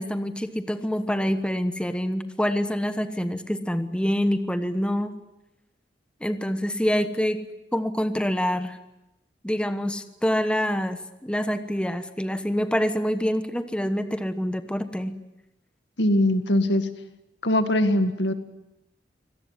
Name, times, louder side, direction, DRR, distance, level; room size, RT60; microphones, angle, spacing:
voice 1, 0.0-5.1 6.2-7.4 7.7-8.8 9.4-15.2, equal, 5° left, 9 dB, 1.2 m, -26 dB
voice 2, 16.0-16.9 17.4-18.3, left 1 dB, 80° left, 9 dB, 2.0 m, -21 dB
25.5 x 18.0 x 9.6 m, 0.94 s
head